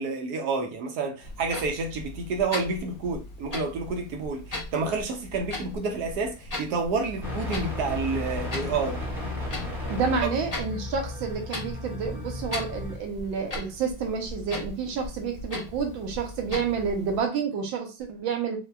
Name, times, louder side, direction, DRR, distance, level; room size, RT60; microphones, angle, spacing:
voice 1, 0.0-9.0, right 4 dB, 70° right, 1.0 m, -29 dB
Clock, 1.2-17.2, left 2 dB, 40° left, 0.5 m, -39 dB
sound 1, 7.2-13.0, left 2 dB, ahead, 0.8 m, -34 dB
voice 2, 9.9-18.6, right 6 dB, 85° right, 1.5 m, -29 dB
4.1 x 2.1 x 2.3 m
omnidirectional pair, 2.1 m